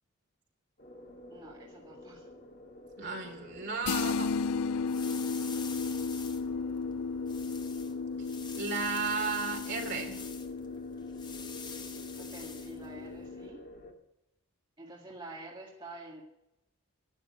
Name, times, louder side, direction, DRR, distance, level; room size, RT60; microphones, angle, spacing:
sound 1, 0.8-13.9, left 1 dB, 45° left, 2.1 m, -50 dB
voice 1, 1.3-2.3 12.2-13.7 14.8-16.2, right 2 dB, 20° right, -3 dB, 1.9 m, -48 dB
voice 2, 3.0-4.3 8.5-10.2, right 4 dB, 50° right, 3 dB, 3.2 m, -34 dB
sound 2, 3.9-13.5, left 4 dB, 80° left, 0.4 m, -35 dB
sound 3, 4.1-13.3, left 5 dB, 20° left, 0.9 m, -47 dB
12.0 x 9.6 x 9.2 m, 0.87 s
head